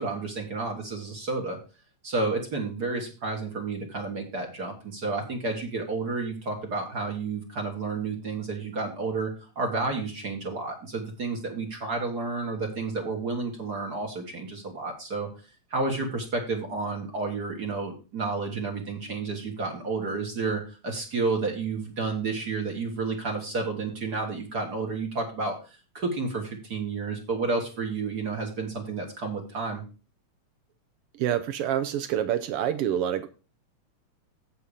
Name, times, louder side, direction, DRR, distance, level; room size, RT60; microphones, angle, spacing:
voice 1, 0.0-1.6 2.0-9.3 9.6-15.3 15.7-29.8, right 3 dB, 40° right, 2 dB, 1.8 m, -31 dB
voice 2, 31.2-33.3, right 10 dB, 80° right, 11 dB, 1.3 m, -27 dB
8.1 x 6.9 x 4.9 m, 0.34 s
omnidirectional pair, 3.3 m